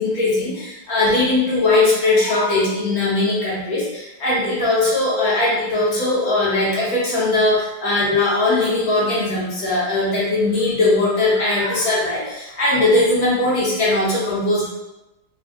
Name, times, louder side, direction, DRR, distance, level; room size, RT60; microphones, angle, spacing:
voice 1, 0.0-14.7, left 2 dB, 60° left, -7 dB, 1.5 m, -19 dB
3.4 x 2.3 x 3.6 m, 0.98 s
omnidirectional pair, 1.9 m